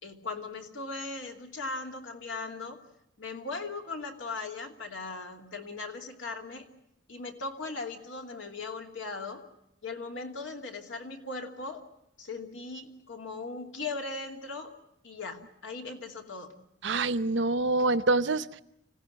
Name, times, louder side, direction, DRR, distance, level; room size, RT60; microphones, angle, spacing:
voice 1, 0.0-2.8 3.2-6.7 7.1-9.4 9.8-11.8 12.2-14.7 15.0-16.6, left 3 dB, 75° left, 3 dB, 2.7 m, -38 dB
voice 2, 16.8-18.6, right 3 dB, 65° right, 13 dB, 0.8 m, -26 dB
25.5 x 17.0 x 9.7 m, 0.84 s
head